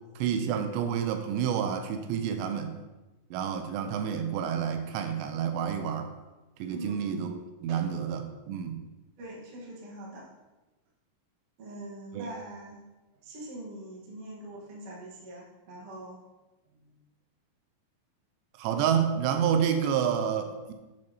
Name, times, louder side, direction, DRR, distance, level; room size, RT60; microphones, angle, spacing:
voice 1, 0.2-2.7 3.3-6.1 6.6-8.8 12.1-12.2 18.6-20.7, right 8 dB, 90° right, 7 dB, 2.9 m, -29 dB
voice 2, 6.7-7.3 7.7-7.9 9.2-10.3 11.6-12.8 13.2-16.2 16.6-17.0, right 1 dB, 55° right, -5 dB, 1.7 m, -43 dB
8.8 x 6.3 x 2.9 m, 1.1 s
omnidirectional pair, 5.0 m